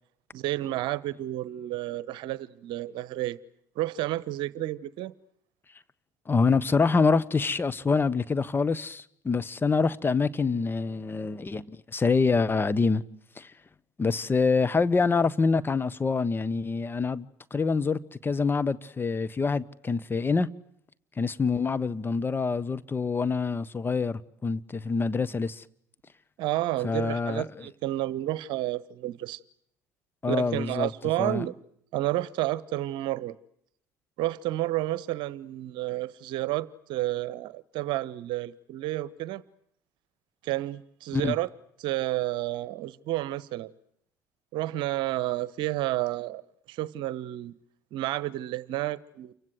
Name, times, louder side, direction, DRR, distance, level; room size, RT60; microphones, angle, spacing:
voice 1, 0.3-3.4 3.7-5.1 26.4-29.4 30.3-31.5 31.9-33.3 34.2-39.4 40.4-41.5 41.8-43.7 44.5-46.4 46.7-47.5 47.9-49.3, right 16 dB, 60° right, 1.1 m, -30 dB
voice 2, 6.2-13.0 13.3-13.5 14.0-20.5 21.2-25.6 26.8-27.7 30.2-30.9 31.2-31.5 41.1-41.3, left 4 dB, 25° left, 1.4 m, -26 dB
29.5 x 24.5 x 8.0 m
figure-of-eight pair, 60°, 9 cm